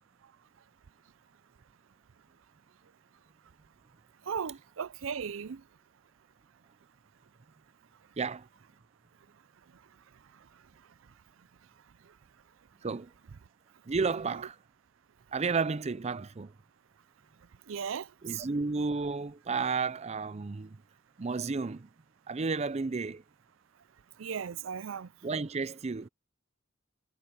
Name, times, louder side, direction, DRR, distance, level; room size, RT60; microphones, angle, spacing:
voice 1, 4.3-5.6 17.7-18.1 24.2-25.1, right 6 dB, 85° right, 0.5 m, -36 dB
voice 2, 8.2-8.5 12.8-13.1 13.9-14.6 15.3-16.5 18.2-20.8 21.2-21.9 22.3-23.2 25.2-26.1, right 4 dB, 35° right, 0.5 m, -32 dB
head